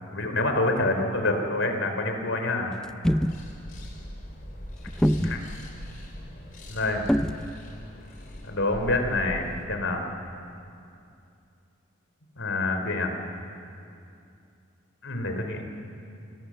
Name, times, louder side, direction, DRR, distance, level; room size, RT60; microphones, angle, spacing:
voice 1, 0.0-2.7 5.2-5.4 6.7-7.2 8.4-10.0 12.4-13.1 15.0-15.6, left 2 dB, 70° left, 4 dB, 3.3 m, -27 dB
sound 1, 2.8-3.4 4.9-5.5 7.1-7.5, equal, 5° left, 0.5 m, -24 dB
sound 2, 3.2-9.7, equal, 45° left, 3.6 m, -41 dB
28.0 x 17.0 x 7.5 m, 2.6 s
head